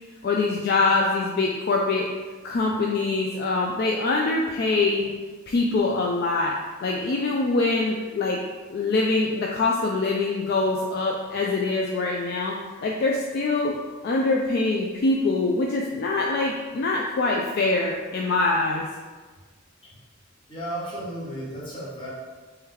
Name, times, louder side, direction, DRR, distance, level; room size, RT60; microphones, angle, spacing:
voice 1, 0.2-2.1 2.4-5.0 5.5-6.5 6.8-8.4 8.7-13.7 14.0-18.9, left 3 dB, 50° left, -1 dB, 0.3 m, -24 dB
voice 2, 20.5-22.1, right 1 dB, 25° left, -8 dB, 1.2 m, -34 dB
3.2 x 2.9 x 3.7 m, 1.4 s
head